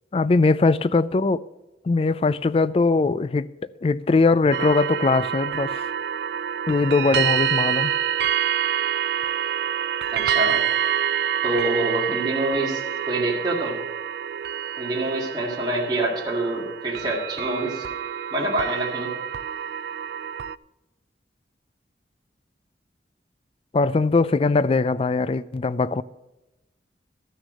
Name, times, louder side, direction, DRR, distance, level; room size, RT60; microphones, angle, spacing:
voice 1, 0.1-1.4 1.9-3.5 3.8-5.9 6.7-7.9 23.7-26.0, left 3 dB, 35° left, 0.3 m, -21 dB
sound 1, 4.5-20.5, right 9 dB, 65° right, 0.3 m, -27 dB
voice 2, 10.1-10.6 11.4-13.8 14.8-17.9 18.3-19.1, right 1 dB, 25° right, 2.1 m, -26 dB
13.0 x 6.2 x 6.3 m
head